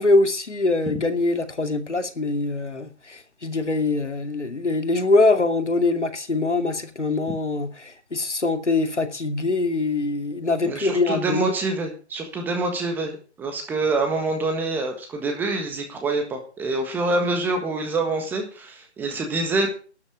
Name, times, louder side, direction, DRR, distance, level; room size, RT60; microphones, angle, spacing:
voice 1, 0.0-11.4, left 3 dB, 90° left, 2.4 m, -23 dB
voice 2, 10.6-19.7, right 2 dB, 5° right, 1.5 m, -26 dB
12.5 x 8.0 x 8.3 m
figure-of-eight pair, 155°, 34 cm